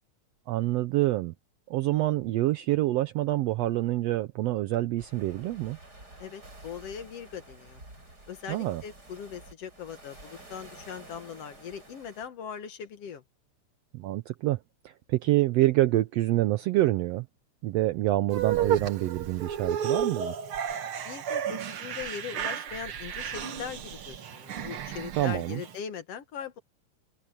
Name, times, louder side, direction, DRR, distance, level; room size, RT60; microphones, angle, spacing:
voice 1, 0.5-1.3 1.7-5.8 8.5-8.8 13.9-17.3 17.6-20.3 25.2-25.6, right 16 dB, 80° right, 1.5 m, -27 dB
sound 1, 5.0-12.3, right 2 dB, 30° right, 8.7 m, -50 dB
voice 2, 6.2-7.8 8.3-13.2 21.0-26.6, left 7 dB, 60° left, 2.1 m, -40 dB
sound 2, 18.3-25.7, right 9 dB, 50° right, 2.0 m, -32 dB
omnidirectional pair, 3.5 m